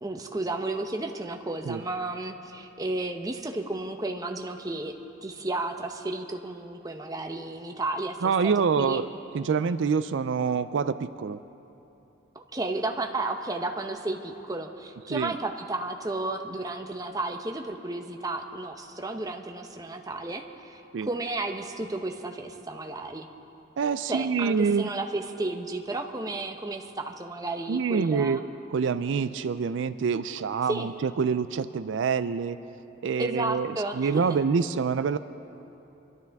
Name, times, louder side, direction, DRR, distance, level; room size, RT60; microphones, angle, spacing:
voice 1, 0.0-4.9 5.2-9.0 12.3-23.3 24.1-28.4 30.7-30.9 33.2-34.2, right 2 dB, 20° right, 4 dB, 0.8 m, -33 dB
voice 2, 8.2-9.1 9.3-11.4 15.1-15.3 20.9-21.1 23.8-24.9 27.7-28.4 28.7-32.6 33.0-35.2, right 5 dB, 75° right, 13 dB, 0.4 m, -26 dB
25.5 x 12.5 x 3.5 m, 2.9 s
head